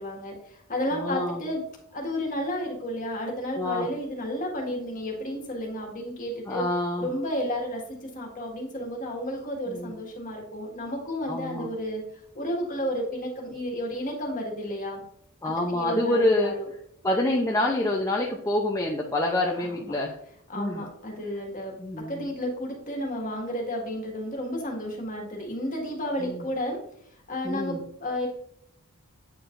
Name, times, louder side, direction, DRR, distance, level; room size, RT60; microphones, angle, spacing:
voice 1, 0.0-1.6 1.9-6.7 7.0-12.0 12.3-15.0 15.7-16.7 19.6-20.0 20.5-21.8 22.1-26.8 27.3-28.3, equal, 35° left, 0 dB, 1.6 m, -32 dB
voice 2, 0.9-1.4 3.6-3.9 6.5-7.1 9.7-10.0 11.2-11.7 15.4-16.5 17.0-20.2 20.6-20.8 21.8-22.2 26.2-26.4 27.4-27.8, left 1 dB, 15° left, -1 dB, 0.6 m, -27 dB
8.4 x 4.8 x 2.5 m, 0.69 s
head